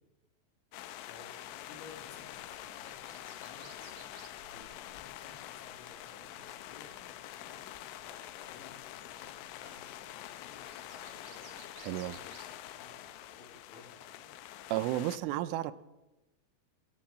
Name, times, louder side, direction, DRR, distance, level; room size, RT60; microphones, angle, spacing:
sound 1, 0.7-15.2, left 13 dB, 90° left, 3.3 m, -46 dB
sound 2, 1.1-13.6, right 8 dB, 70° right, 3.6 m, -62 dB
sound 3, 1.4-12.3, left 1 dB, 40° left, 1.5 m, -62 dB
voice 1, 1.6-7.6 8.1-11.5 11.9-14.3, left 4 dB, 70° left, 2 dB, 4.9 m, -57 dB
voice 2, 11.8-12.2 14.7-15.7, right 14 dB, 85° right, 15 dB, 3.2 m, -32 dB
21.0 x 7.8 x 7.3 m, 1.0 s
omnidirectional pair, 5.6 m